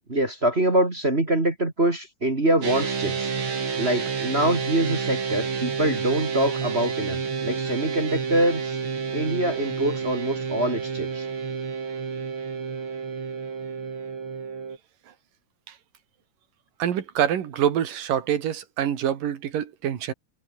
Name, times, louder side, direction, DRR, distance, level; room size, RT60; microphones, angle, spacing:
voice 1, 0.1-3.3 3.8-8.8 9.1-11.3, right 1 dB, 20° right, 2.3 m, -24 dB
sound 1, 2.6-14.8, right 5 dB, 35° right, 3.1 m, -30 dB
voice 2, 16.8-20.1, right 10 dB, 65° right, 3.7 m, -26 dB
omnidirectional pair, 4.2 m